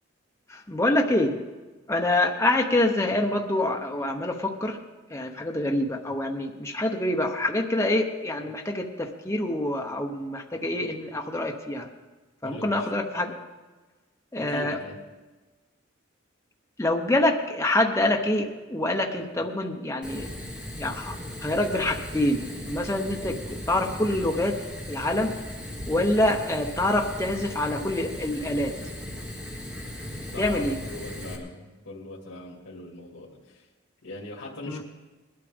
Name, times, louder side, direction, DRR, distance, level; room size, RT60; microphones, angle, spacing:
voice 1, 0.5-1.4 1.9-4.8 5.1-11.9 12.4-13.4 14.3-14.8 16.8-20.3 20.8-21.2 21.4-24.6 24.9-25.4 25.9-28.8 30.4-30.8 34.7-34.8, left 1 dB, 15° left, 2 dB, 0.9 m, -26 dB
voice 2, 12.4-12.9 14.4-15.0 30.3-33.6 34.0-34.8, left 2 dB, 70° left, -4 dB, 2.4 m, -40 dB
Fire, 20.0-31.3, equal, 5° right, 1.7 m, -37 dB
20.5 x 12.0 x 3.6 m, 1.3 s
head